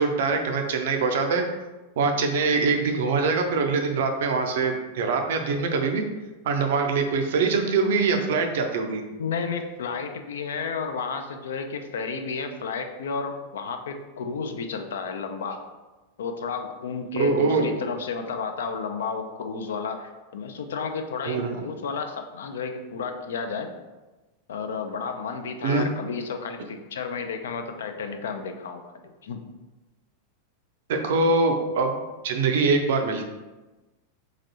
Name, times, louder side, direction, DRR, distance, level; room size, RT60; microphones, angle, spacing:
voice 1, 0.0-1.4 2.0-6.0 6.4-9.0 17.2-17.7 21.3-21.6 25.6-25.8 30.9-33.2, right 4 dB, 55° right, 4 dB, 0.4 m, -23 dB
voice 2, 9.2-15.6 16.2-23.7 24.5-28.8 29.2-29.4, left 5 dB, 60° left, 6 dB, 0.3 m, -32 dB
4.0 x 2.5 x 2.8 m, 1.2 s
figure-of-eight pair, 90°, 0 cm